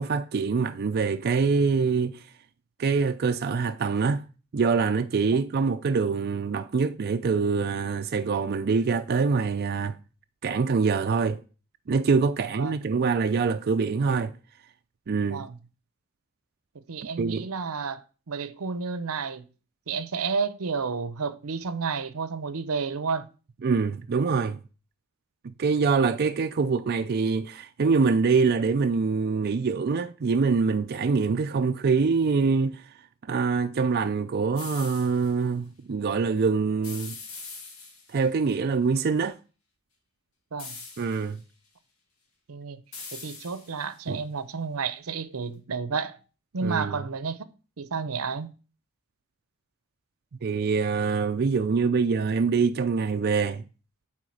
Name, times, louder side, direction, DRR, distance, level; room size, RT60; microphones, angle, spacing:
voice 1, 0.0-2.2 2.8-4.2 4.5-9.9 10.4-11.4 11.9-14.3 15.1-15.5 17.2-17.5 23.6-24.6 25.4-32.9 33.3-37.1 38.1-39.4 41.0-41.4 44.1-44.2 46.6-47.0 50.4-53.6, right 5 dB, 45° right, 0.4 m, -24 dB
voice 2, 12.4-12.7 15.3-15.6 16.9-19.5 19.9-23.3 40.5-40.7 42.5-42.8 43.1-46.2 46.5-47.4 47.8-48.5, right 5 dB, 85° right, 0.7 m, -31 dB
Hit cage, 34.6-35.3 36.8-38.3 40.6-41.4 42.9-44.0, left 4 dB, 80° left, 2.0 m, -42 dB
8.6 x 3.7 x 6.4 m
head